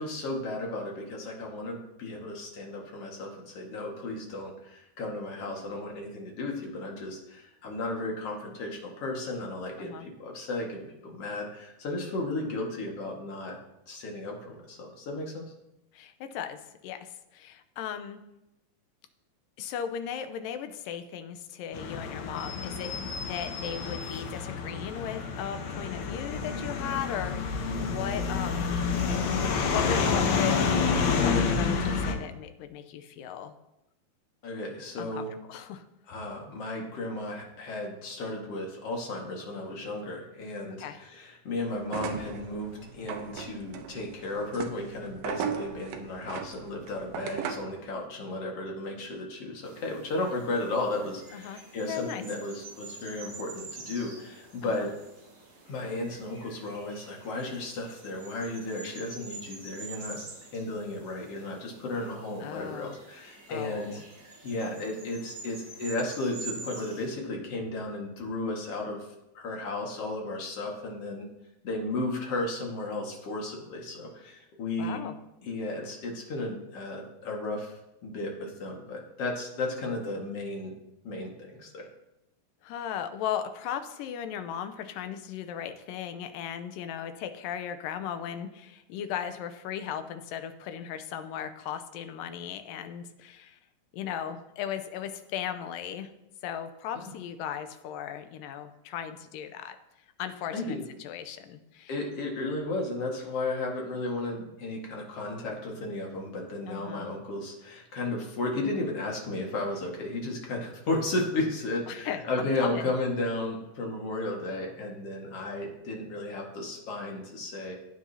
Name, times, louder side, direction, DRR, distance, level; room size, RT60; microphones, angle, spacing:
voice 1, 0.0-13.6 13.9-15.4 34.4-35.3 36.1-54.9 55.7-60.2 60.5-64.0 64.4-69.1 69.3-71.3 71.6-75.0 75.4-80.7 81.0-81.8 97.0-97.1 100.5-100.8 101.9-117.7, left 2 dB, 50° left, 0 dB, 2.4 m, -34 dB
voice 2, 15.9-18.2 19.6-22.9 23.3-28.8 29.7-30.8 31.2-33.5 35.0-35.9 40.8-41.0 51.3-52.2 54.6-54.9 62.4-63.0 63.5-64.0 74.8-75.2 82.6-93.6 93.9-96.1 96.4-99.8 100.2-101.9 106.7-107.1 111.9-112.9, left 9 dB, 80° left, 9 dB, 2.3 m, -37 dB
sound 1, 21.7-32.1, left 5 dB, 65° left, 2.0 m, -29 dB
sound 2, 41.8-47.8, right 7 dB, 85° right, 2.7 m, -37 dB
sound 3, 49.6-67.1, right 4 dB, 65° right, 5.4 m, -47 dB
15.5 x 9.3 x 2.8 m, 0.88 s
omnidirectional pair, 4.0 m